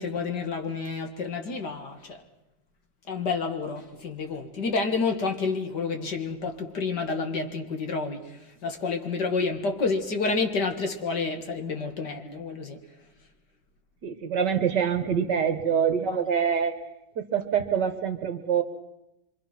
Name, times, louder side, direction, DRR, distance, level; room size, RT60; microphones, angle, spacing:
voice 1, 0.0-2.2 3.1-12.8, left 4 dB, 60° left, 2.4 m, -29 dB
voice 2, 14.0-16.8 17.2-18.6, right 7 dB, 60° right, 2.0 m, -25 dB
25.5 x 24.5 x 6.0 m
omnidirectional pair, 2.1 m